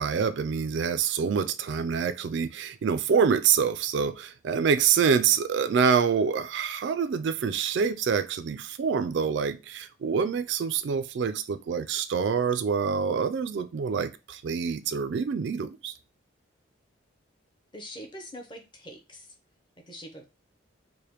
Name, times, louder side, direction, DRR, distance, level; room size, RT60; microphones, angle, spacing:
voice 1, 0.0-16.0, right 6 dB, 60° right, 0.3 m, -26 dB
voice 2, 17.7-19.3 19.9-20.2, equal, 25° left, 0.7 m, -43 dB
4.9 x 2.1 x 2.9 m
head